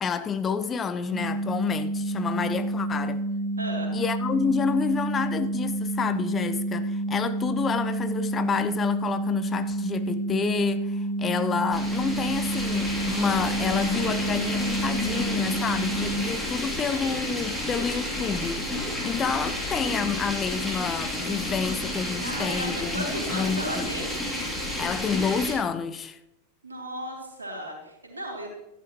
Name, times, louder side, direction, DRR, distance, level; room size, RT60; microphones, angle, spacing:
voice 1, 0.0-3.2 3.9-23.9 24.8-26.2, left 6 dB, 20° left, 0.6 m, -29 dB
sound 1, 1.1-16.2, right 1 dB, 60° left, 4.3 m, -29 dB
voice 2, 3.6-3.9 16.2-16.7 22.2-24.1 26.6-28.5, right 1 dB, 80° right, 3.3 m, -35 dB
sound 2, 11.7-25.5, left 1 dB, 5° left, 3.1 m, -31 dB
14.0 x 11.5 x 3.1 m
figure-of-eight pair, 90°, 0 cm